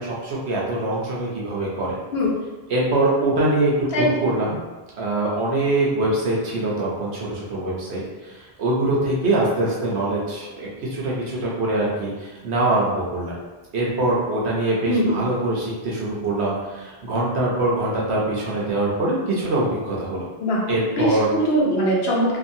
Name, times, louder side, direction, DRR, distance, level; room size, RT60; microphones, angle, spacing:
voice 1, 0.0-2.0 2.7-4.6 5.0-13.4 13.7-20.3 20.7-21.3, right 2 dB, 90° right, -5 dB, 1.1 m, -23 dB
voice 2, 14.9-15.3 20.4-20.6 20.9-22.4, equal, 75° left, -4 dB, 1.0 m, -21 dB
2.8 x 2.5 x 2.6 m, 1.2 s
omnidirectional pair, 1.1 m